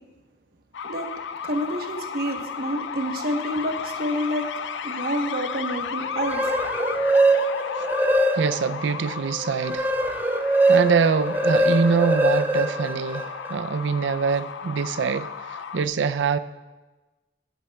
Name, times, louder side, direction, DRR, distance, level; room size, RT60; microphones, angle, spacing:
sound 1, 0.7-15.8, left 6 dB, 85° left, 0.4 m, -34 dB
voice 1, 1.4-4.4 4.8-6.5, equal, 55° right, 1.1 m, -28 dB
sound 2, 6.1-8.8 9.2-13.5, right 2 dB, 10° right, 0.4 m, -22 dB
voice 2, 8.3-9.9 10.6-16.4, right 5 dB, 85° right, 0.4 m, -24 dB
20.5 x 8.0 x 2.3 m
head